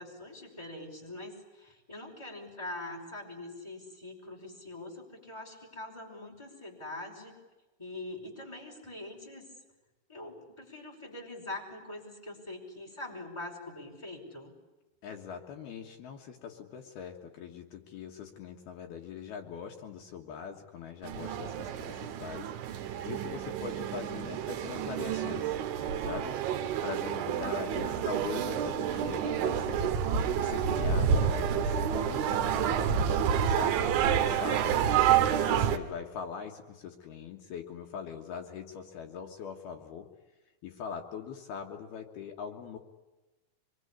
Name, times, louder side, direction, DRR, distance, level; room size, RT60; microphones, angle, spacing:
voice 1, 0.0-7.3 7.8-9.5 10.1-14.5, left 2 dB, 5° left, 0 dB, 4.7 m, -43 dB
voice 2, 15.0-22.5 23.0-25.6 26.0-26.4 26.8-30.0 30.3-33.1 33.3-34.9 35.4-40.1 40.6-42.8, left 7 dB, 65° left, 2 dB, 3.0 m, -42 dB
sound 1, 21.0-35.8, right 8 dB, 75° right, 3.7 m, -29 dB
25.0 x 23.5 x 9.9 m, 1.1 s
omnidirectional pair, 5.8 m